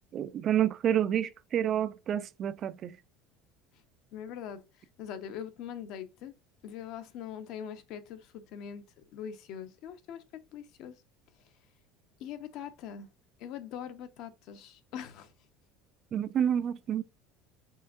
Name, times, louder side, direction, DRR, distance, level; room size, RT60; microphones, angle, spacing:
voice 1, 0.1-3.0 16.1-17.0, right 10 dB, 35° right, 0.3 m, -29 dB
voice 2, 4.1-4.6 5.0-6.3 6.6-8.8 9.1-10.2 10.5-10.9 12.2-13.1 13.4-15.3, left 9 dB, 55° left, 0.7 m, -42 dB
5.5 x 3.5 x 2.5 m
cardioid pair, 150°, 0 cm